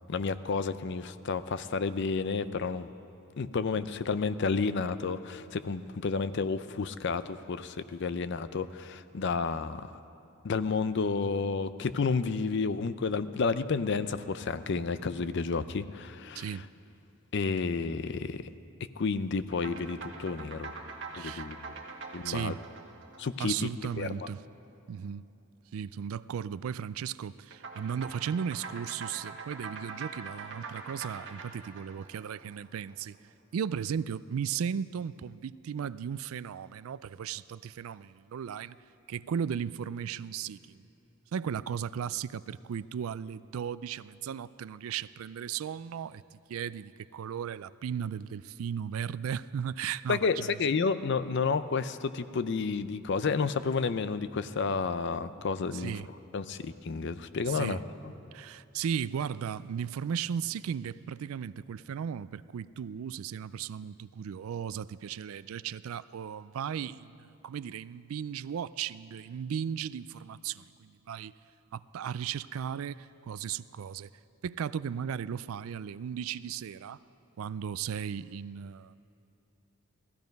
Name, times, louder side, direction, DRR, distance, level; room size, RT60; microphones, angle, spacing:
voice 1, 0.1-2.9 3.4-10.0 10.4-16.5 17.3-18.5 19.0-20.7 21.2-21.6 22.1-22.5 23.2-23.5 24.0-24.1 50.1-55.9 56.3-57.8, left 4 dB, 55° left, 13 dB, 0.5 m, -31 dB
voice 2, 16.3-16.7 21.1-21.5 22.2-22.6 23.4-24.4 24.9-25.2 25.7-33.1 33.5-38.7 39.1-40.9 41.3-50.5 55.7-56.1 57.5-57.8 58.3-71.3 71.7-74.1 74.4-77.0 77.4-79.0, right 8 dB, 80° right, 17 dB, 0.4 m, -36 dB
sound 1, 19.5-24.2 27.5-32.9, right 4 dB, 55° right, 1.4 m, -44 dB
17.0 x 14.5 x 5.3 m, 2.7 s
head